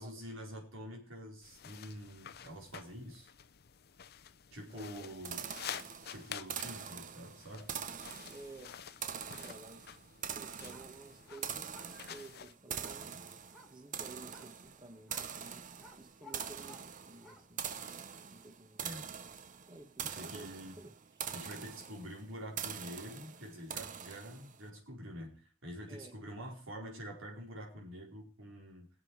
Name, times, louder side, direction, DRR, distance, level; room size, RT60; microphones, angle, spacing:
voice 1, 0.0-3.3 4.5-5.4 6.1-7.7 18.8-19.1 20.0-20.8 21.3-28.9, equal, 90° right, -1 dB, 4.5 m, -47 dB
sound 1, 1.4-12.5, left 9 dB, 55° left, 0.6 m, -50 dB
voice 2, 4.7-5.5 8.3-8.7 9.4-9.8 10.3-13.2 13.7-15.7 15.9-17.7 18.2-18.8 19.7-21.2 25.9-26.2, right 2 dB, 25° right, 8 dB, 1.4 m, -53 dB
sound 2, 5.3-24.6, right 8 dB, 40° right, 0.7 m, -44 dB
sound 3, 10.6-17.6, left 1 dB, ahead, 2.0 m, -60 dB
22.0 x 7.4 x 4.8 m, 0.40 s
head